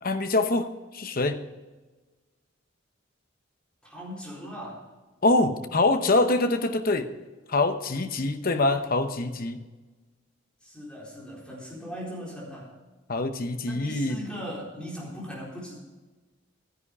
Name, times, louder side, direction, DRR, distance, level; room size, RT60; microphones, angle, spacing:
voice 1, 0.0-0.7 0.9-1.4 5.2-7.1 7.5-9.6 13.1-14.2, left 2 dB, 45° left, 8 dB, 0.9 m, -24 dB
voice 2, 3.8-4.8 10.6-12.7 13.6-15.8, equal, 5° left, -6 dB, 4.1 m, -39 dB
13.0 x 10.5 x 4.8 m, 1.2 s
head